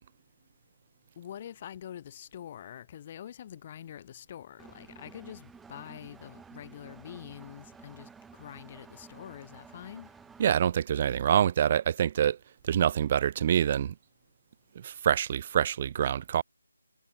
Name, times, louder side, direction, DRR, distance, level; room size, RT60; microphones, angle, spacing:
voice 1, 1.2-10.1, left 10 dB, 25° left, 5.3 m, -45 dB
Engine, 4.6-10.4, right 5 dB, 5° right, 2.4 m, -52 dB
voice 2, 10.4-12.4 12.6-13.9 14.8-16.4, right 9 dB, 30° right, 0.5 m, -26 dB
figure-of-eight pair, 165°, 0 cm